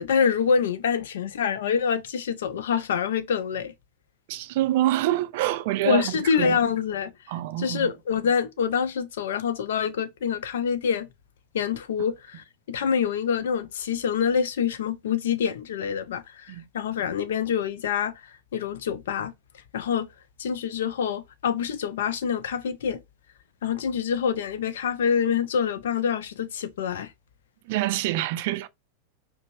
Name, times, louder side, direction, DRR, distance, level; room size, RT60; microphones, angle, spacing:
voice 1, 0.0-3.7 5.8-7.1 7.6-11.1 11.5-18.2 18.5-19.3 19.7-20.1 20.4-23.0 23.6-27.1, left 7 dB, 60° left, 0.5 m, -26 dB
voice 2, 4.3-6.6 7.3-7.9 16.5-16.6 27.7-28.7, right 14 dB, 50° right, 0.3 m, -26 dB
5.1 x 2.0 x 2.7 m
figure-of-eight pair, 90°, 0 cm